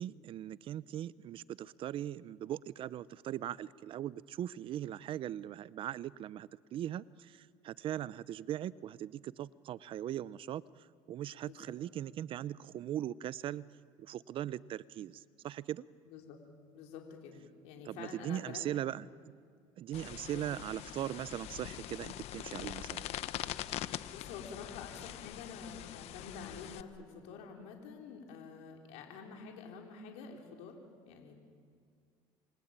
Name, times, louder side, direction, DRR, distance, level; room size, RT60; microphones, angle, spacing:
voice 1, 0.0-13.7 14.0-15.8 17.8-19.1 19.8-23.1, right 11 dB, 50° right, 19 dB, 0.6 m, -40 dB
voice 2, 16.1-16.4 16.7-18.9 20.3-20.5 24.1-30.8 31.1-31.4, left 5 dB, 80° left, 1 dB, 4.1 m, -48 dB
sound 1, 19.9-26.8, left 13 dB, 65° left, 1.0 m, -43 dB
28.0 x 23.5 x 8.9 m, 2.2 s
cardioid pair, 115°, 12 cm